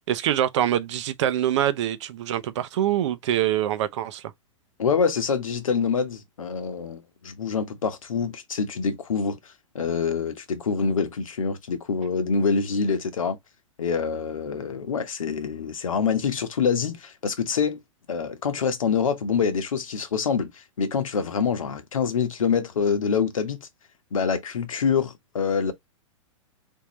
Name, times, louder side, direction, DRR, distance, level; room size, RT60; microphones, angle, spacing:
voice 1, 0.0-4.3, right 11 dB, 60° right, 0.6 m, -25 dB
voice 2, 4.8-9.4 9.7-13.4 13.8-17.8 18.1-20.5 20.8-23.7 24.1-25.7, left 6 dB, 90° left, 1.0 m, -25 dB
3.7 x 2.7 x 3.0 m
hypercardioid pair, 125°, 17 cm